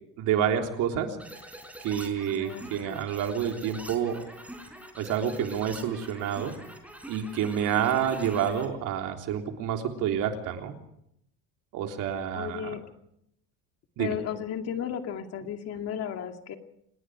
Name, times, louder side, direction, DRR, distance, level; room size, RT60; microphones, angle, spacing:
voice 1, 0.2-1.1 1.8-4.2 5.0-6.5 7.1-10.8 11.7-12.7 14.0-14.2, right 9 dB, 60° right, 3 dB, 3.6 m, -28 dB
sound 1, 1.2-8.7, right 1 dB, 5° right, 4.7 m, -44 dB
voice 2, 2.3-3.0 12.3-12.8 14.0-16.6, left 8 dB, 45° left, 5 dB, 2.4 m, -34 dB
27.5 x 19.5 x 5.0 m, 0.75 s
cardioid pair, 150°, 35 cm